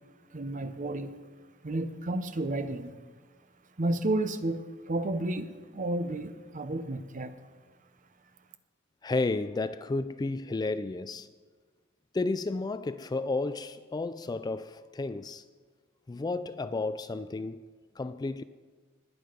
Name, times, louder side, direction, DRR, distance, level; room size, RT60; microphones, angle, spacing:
voice 1, 0.3-1.1 1.6-2.9 3.8-7.3, right 2 dB, 40° right, 0.8 m, -32 dB
voice 2, 9.0-11.3 12.1-15.4 16.1-18.4, left 3 dB, 20° left, 0.3 m, -32 dB
20.5 x 8.6 x 5.2 m
head